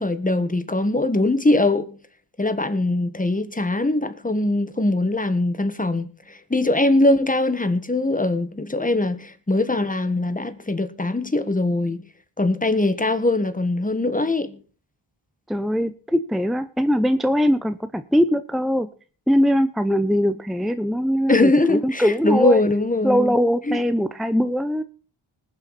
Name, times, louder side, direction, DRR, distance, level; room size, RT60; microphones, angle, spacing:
voice 1, 0.0-2.0 2.4-12.0 12.4-14.6 21.3-23.3 23.7-23.8, left 2 dB, 15° left, 1.6 m, -21 dB
voice 2, 15.5-18.9 19.3-22.6 23.0-24.8, equal, ahead, 0.7 m, -21 dB
20.0 x 7.5 x 4.2 m
cardioid pair, 50°, 48 cm